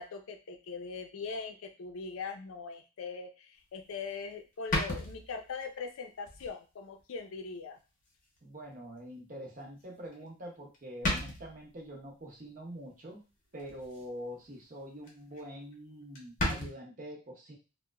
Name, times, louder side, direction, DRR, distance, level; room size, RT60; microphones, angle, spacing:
voice 1, 0.0-7.8, left 4 dB, 80° left, 5 dB, 0.4 m, -41 dB
sound 1, 3.9-4.0 4.7-5.6 6.3-6.5 7.0-7.1 8.4-8.5 10.1-10.5 10.7-10.8 11.0-11.7 13.6-14.1 14.4-14.7 15.0-15.1 15.3-15.4 15.7-15.8 16.1-16.7, left 1 dB, 40° left, 0.6 m, -34 dB
voice 2, 8.4-13.2 13.5-17.6, equal, 40° right, 0 dB, 0.6 m, -45 dB
2.8 x 2.1 x 2.2 m, 0.32 s
head